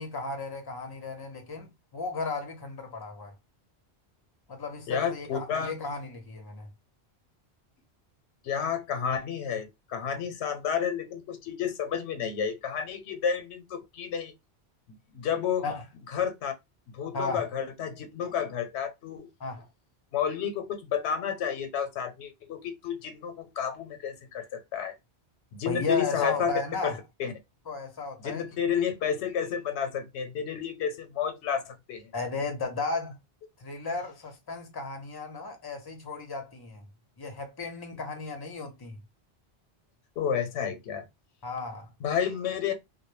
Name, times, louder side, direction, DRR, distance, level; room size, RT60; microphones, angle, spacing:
voice 1, 0.0-3.3 4.5-6.7 15.6-15.8 17.1-17.5 19.4-19.7 25.6-27.0 27.7-28.5 32.1-33.2 33.6-36.9 37.2-39.0 41.4-41.9, left 3 dB, 30° left, 0.5 m, -34 dB
voice 2, 4.9-5.7 8.4-14.3 15.1-15.6 16.1-16.5 16.9-19.3 20.1-25.0 25.5-26.5 26.8-27.3 28.2-32.1 40.2-41.1 42.0-42.7, left 7 dB, 90° left, 0.9 m, -31 dB
2.1 x 2.1 x 3.1 m
omnidirectional pair, 1.1 m